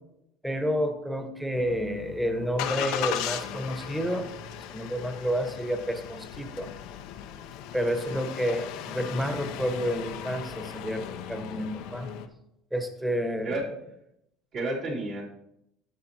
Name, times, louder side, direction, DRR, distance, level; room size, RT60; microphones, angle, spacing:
voice 1, 0.4-4.3 4.7-6.7 7.7-12.1 12.7-13.5, equal, 5° right, 6 dB, 1.3 m, -30 dB
Engine starting, 1.5-12.3, left 9 dB, 75° left, 0.7 m, -37 dB
voice 2, 13.4-13.9 14.5-15.2, right 2 dB, 60° right, -5 dB, 3.1 m, -31 dB
12.5 x 6.7 x 3.0 m, 0.81 s
supercardioid pair, 105°, 0 cm